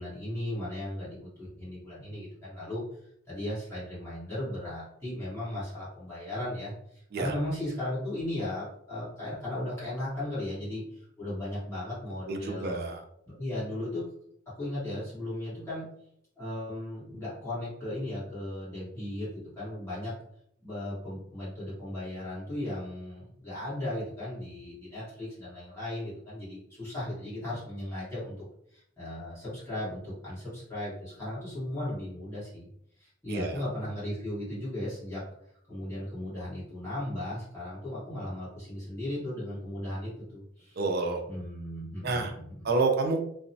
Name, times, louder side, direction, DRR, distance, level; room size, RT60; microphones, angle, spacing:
voice 1, 0.0-2.8 3.3-12.8 13.3-14.0 14.4-15.8 16.4-20.2 20.6-32.7 33.0-35.2 35.7-40.8 41.3-42.6, left 1 dB, 15° left, -11 dB, 1.3 m, -36 dB
voice 2, 12.3-13.0 33.3-33.6 40.8-41.2 42.0-42.3 42.6-43.2, right 3 dB, 50° right, 4 dB, 0.4 m, -28 dB
2.9 x 2.1 x 2.6 m, 0.70 s
head